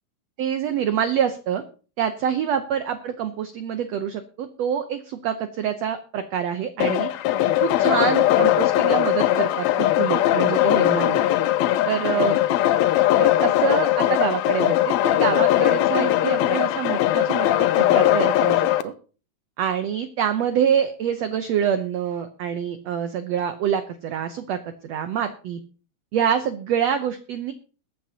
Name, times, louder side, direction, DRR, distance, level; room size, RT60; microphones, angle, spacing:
voice 1, 0.4-1.6 2.0-7.1 7.6-11.2 11.9-12.4 13.2-18.9 19.6-25.6 26.1-27.5, right 8 dB, 85° right, 9 dB, 1.4 m, -26 dB
sound 1, 6.8-18.8, left 13 dB, 90° left, 1.5 m, -20 dB
21.0 x 9.2 x 2.8 m, 0.38 s
omnidirectional pair, 4.0 m